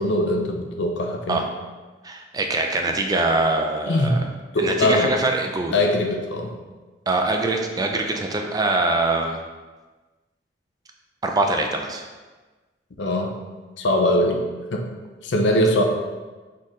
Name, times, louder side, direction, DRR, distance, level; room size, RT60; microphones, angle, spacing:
voice 1, 0.0-1.4 3.9-4.2 4.5-5.1 5.7-6.5 13.0-13.3 13.8-14.8 15.2-15.8, left 1 dB, 70° left, 3 dB, 0.6 m, -21 dB
voice 2, 2.0-4.2 4.6-5.8 7.1-9.4 11.2-12.1, right 2 dB, 20° right, 3 dB, 0.4 m, -23 dB
4.2 x 3.7 x 3.1 m, 1.3 s
head